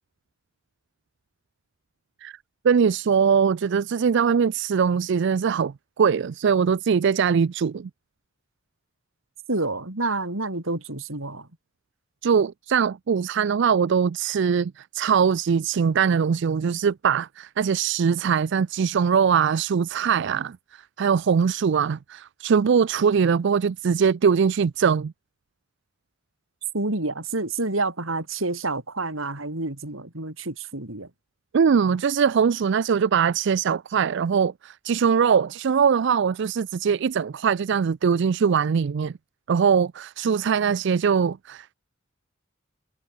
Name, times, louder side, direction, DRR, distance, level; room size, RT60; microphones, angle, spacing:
voice 1, 2.6-7.9 12.2-25.1 31.5-39.1 39.5-41.7, right 6 dB, 60° right, 0.4 m, -22 dB
voice 2, 9.5-11.5 26.7-31.1, right 2 dB, 80° right, 4.0 m, -28 dB
head